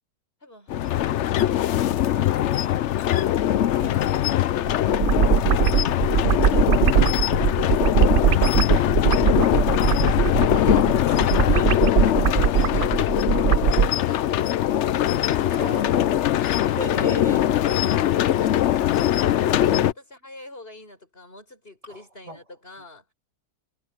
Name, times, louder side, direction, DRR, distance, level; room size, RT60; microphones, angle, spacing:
voice 1, 0.4-6.1 9.5-15.0 17.1-23.1, left 1 dB, 35° left, 6.9 m, -46 dB
sound 1, 0.7-19.9, left 12 dB, 65° left, 0.7 m, -21 dB
sound 2, 4.7-13.9, right 9 dB, 90° right, 0.4 m, -21 dB
voice 2, 6.5-7.2 11.0-11.7 15.5-17.7 19.6-19.9 21.9-22.4, right 1 dB, 20° right, 3.0 m, -37 dB
omnidirectional pair, 1.7 m